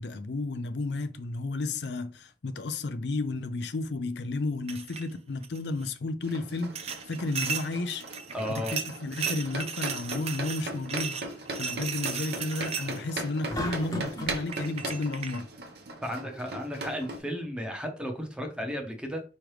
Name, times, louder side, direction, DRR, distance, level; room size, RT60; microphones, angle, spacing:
voice 1, 0.0-8.0 8.5-11.2 11.6-15.5, left 2 dB, 70° left, 0.5 m, -32 dB
sound 1, 4.7-5.1 5.4-5.9 6.8-13.1 14.1-14.2 14.5-15.4, right 6 dB, 35° right, 0.5 m, -36 dB
sound 2, 6.2-17.2, right 2 dB, 65° right, 1.0 m, -39 dB
voice 2, 8.3-8.7 16.0-19.2, equal, 5° right, 0.9 m, -34 dB
sound 3, 13.5-14.4, equal, 20° left, 1.0 m, -34 dB
5.0 x 3.2 x 3.1 m
head